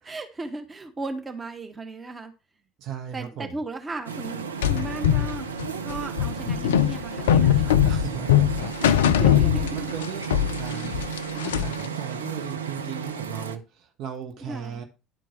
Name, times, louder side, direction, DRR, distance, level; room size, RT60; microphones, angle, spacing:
voice 1, 0.0-2.3 3.1-4.4 4.7-5.5 5.8-7.8 8.8-9.8 11.3-11.5 14.4-14.8, right 2 dB, 20° right, 1.3 m, -36 dB
voice 2, 2.8-3.6 7.8-8.7 9.1-11.1 11.4-14.8, right 8 dB, 50° right, 1.1 m, -36 dB
sound 1, 4.0-13.6, right 6 dB, 80° right, 0.6 m, -33 dB
sound 2, 4.6-10.1 10.3-11.9, left 10 dB, 70° left, 0.4 m, -21 dB
11.0 x 4.5 x 4.5 m
figure-of-eight pair, 65°, 0 cm